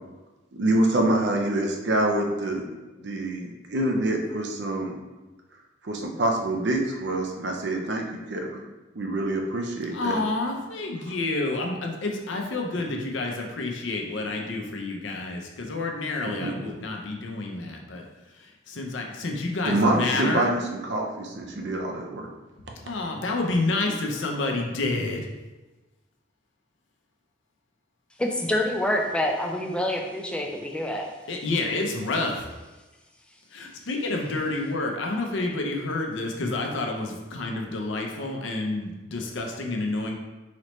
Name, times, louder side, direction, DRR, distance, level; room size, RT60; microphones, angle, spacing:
voice 1, 0.5-2.6 3.0-5.0 5.8-8.6 8.9-10.2 12.7-13.0 16.2-16.5 19.6-22.3, right 1 dB, 65° right, 1 dB, 0.6 m, -26 dB
voice 2, 9.9-18.0 18.7-20.5 22.8-25.3 31.3-32.5 33.5-40.1, left 2 dB, 80° left, 1 dB, 0.6 m, -29 dB
voice 3, 28.2-31.1, left 1 dB, 5° left, 1 dB, 0.3 m, -26 dB
4.0 x 3.1 x 3.0 m, 1.2 s
head